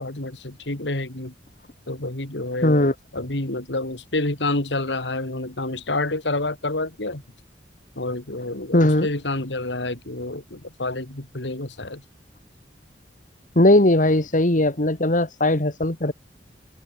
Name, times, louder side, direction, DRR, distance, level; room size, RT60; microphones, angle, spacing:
voice 1, 0.0-1.3 1.9-7.2 8.0-12.0, left 2 dB, 90° left, 2.8 m, -28 dB
voice 2, 2.6-2.9 8.7-9.1 13.6-16.1, left 1 dB, 50° left, 2.3 m, -18 dB
open air
head